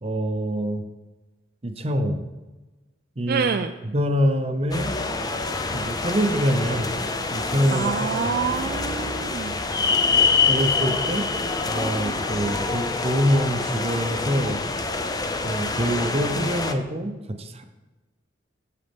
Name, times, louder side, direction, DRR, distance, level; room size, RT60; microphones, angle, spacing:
voice 1, 0.0-0.8 1.6-2.2 3.2-3.5 3.8-4.9 5.7-6.9 7.3-8.0 10.5-11.3 11.7-14.6 15.4-17.1 17.4-17.6, equal, 35° right, 7 dB, 0.7 m, -25 dB
voice 2, 3.3-3.7 7.7-9.6, right 6 dB, 55° right, 7 dB, 0.4 m, -26 dB
sound 1, 4.7-16.7, left 4 dB, 20° left, 0.5 m, -26 dB
9.1 x 6.7 x 3.5 m, 1.1 s
head